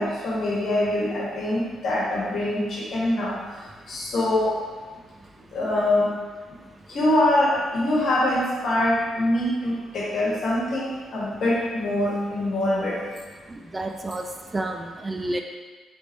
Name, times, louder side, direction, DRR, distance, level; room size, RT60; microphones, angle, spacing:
voice 1, 0.0-4.6 5.5-6.1 6.9-13.0, left 1 dB, 60° left, -6 dB, 1.4 m, -24 dB
voice 2, 13.5-15.4, right 2 dB, 20° right, 4 dB, 0.3 m, -31 dB
3.4 x 3.0 x 4.0 m, 1.4 s
cardioid pair, 90°, 0 cm